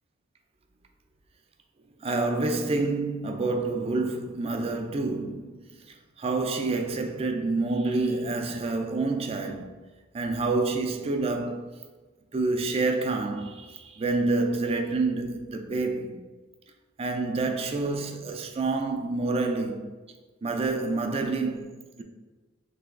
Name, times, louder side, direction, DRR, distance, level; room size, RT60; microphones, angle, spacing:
voice 1, 2.0-9.7 10.1-11.7 12.3-16.2 17.0-19.9 20.4-22.0, right 3 dB, 30° right, 0.4 m, -28 dB
3.3 x 2.9 x 3.5 m
head